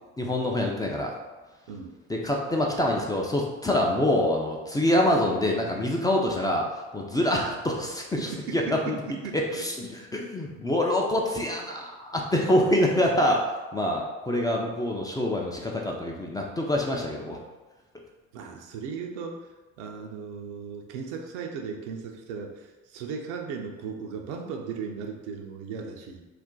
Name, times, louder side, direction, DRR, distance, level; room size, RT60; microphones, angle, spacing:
voice 1, 0.2-1.1 2.1-6.7 6.9-9.0 9.5-13.4 13.7-17.4, left 1 dB, 10° left, -1 dB, 0.4 m, -25 dB
voice 2, 8.2-8.8 9.2-9.6 18.3-19.5 19.8-26.2, right 5 dB, 75° right, 3 dB, 0.6 m, -37 dB
2.5 x 2.1 x 3.7 m, 1.2 s
hypercardioid pair, 70°, 35 cm